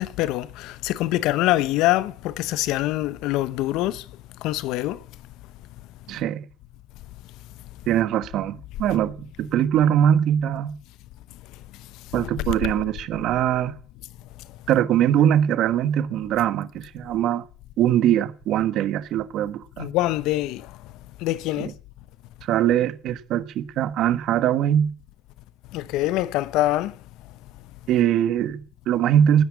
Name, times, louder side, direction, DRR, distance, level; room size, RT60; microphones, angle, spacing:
voice 1, 0.0-4.0 4.4-5.0 19.8-20.7 21.2-21.7 25.7-26.9, left 16 dB, 85° left, 0.9 m, -24 dB
voice 2, 6.1-6.5 7.9-10.8 12.1-13.7 14.7-17.4 17.8-19.9 21.6-21.7 22.4-24.9 27.9-29.4, right 10 dB, 75° right, 1.3 m, -22 dB
18.5 x 10.5 x 7.4 m
supercardioid pair, 60°, 0 cm